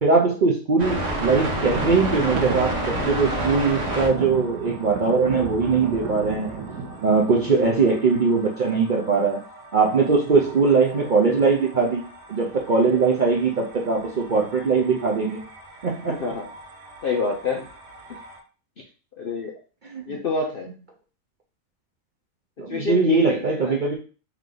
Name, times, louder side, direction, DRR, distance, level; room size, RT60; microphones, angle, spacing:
voice 1, 0.0-6.6 7.0-9.4 9.7-12.0 12.3-15.4 15.8-16.1 19.9-20.2 22.6-24.0, right 4 dB, 85° right, -1 dB, 0.4 m, -21 dB
sound 1, 0.8-18.4, right 1 dB, 45° right, 1.3 m, -34 dB
Thunder, 1.1-8.2, right 4 dB, 70° right, 1.0 m, -34 dB
voice 2, 7.4-7.8 16.1-16.5 17.0-17.7 19.2-19.5 20.1-20.7 22.7-23.8, left 4 dB, 75° left, 0 dB, 0.5 m, -27 dB
3.5 x 3.2 x 3.8 m, 0.36 s
omnidirectional pair, 1.8 m